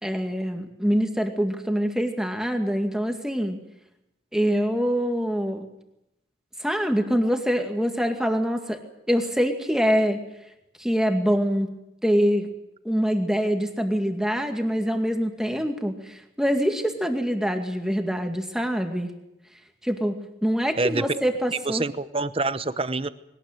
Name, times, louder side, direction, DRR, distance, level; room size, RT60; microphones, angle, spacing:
voice 1, 0.0-3.6 4.3-5.7 6.6-8.8 9.1-10.2 10.8-11.7 12.0-12.5 12.8-19.1 19.8-21.8, equal, 5° right, 5 dB, 2.1 m, -24 dB
voice 2, 21.5-23.1, right 3 dB, 30° right, 13 dB, 0.9 m, -26 dB
21.0 x 19.0 x 9.2 m, 0.89 s
head